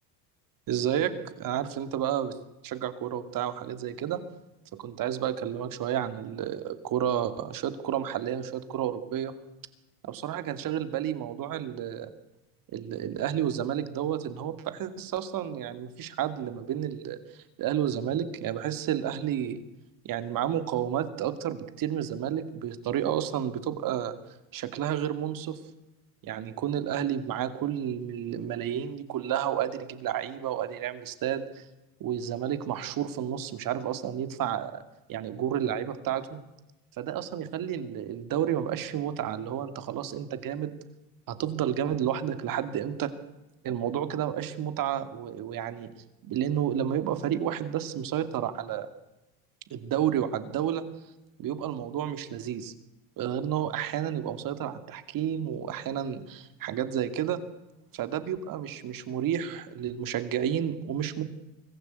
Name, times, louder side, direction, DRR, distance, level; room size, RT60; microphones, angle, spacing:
voice 1, 0.7-2.4 2.6-4.2 4.8-9.3 10.0-12.1 12.7-17.2 17.6-19.6 20.0-24.2 24.5-25.6 26.2-31.6 32.0-34.8 35.1-36.4 37.0-40.8 41.3-43.1 43.6-45.9 46.2-48.9 49.7-50.8 51.4-52.7 53.2-57.4 57.9-61.2, right 10 dB, 50° right, 10 dB, 2.5 m, -31 dB
24.5 x 15.0 x 8.3 m, 0.98 s
supercardioid pair, 110°, 43 cm